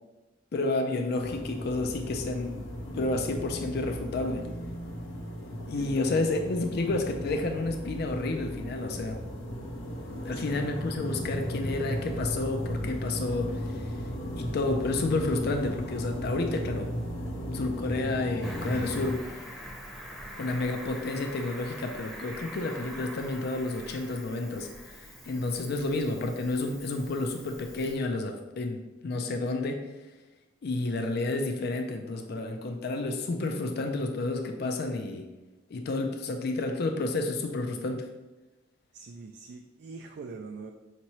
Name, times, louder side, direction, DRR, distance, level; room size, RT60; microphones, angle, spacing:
voice 1, 0.5-2.6 2.9-4.5 5.7-9.2 10.2-13.9 14.4-16.9 17.5-19.2 20.4-29.8 30.6-35.3 35.7-38.1, left 2 dB, 55° left, 4 dB, 0.4 m, -30 dB
sound 1, 1.2-19.1, equal, 80° left, 0.9 m, -36 dB
voice 2, 5.7-6.2 10.3-10.7 20.1-20.4 30.9-31.3 38.9-40.7, right 4 dB, 60° right, 3 dB, 0.3 m, -45 dB
Cricket, 18.4-27.9, equal, ahead, 0.7 m, -44 dB
5.4 x 2.9 x 3.0 m, 1.1 s
head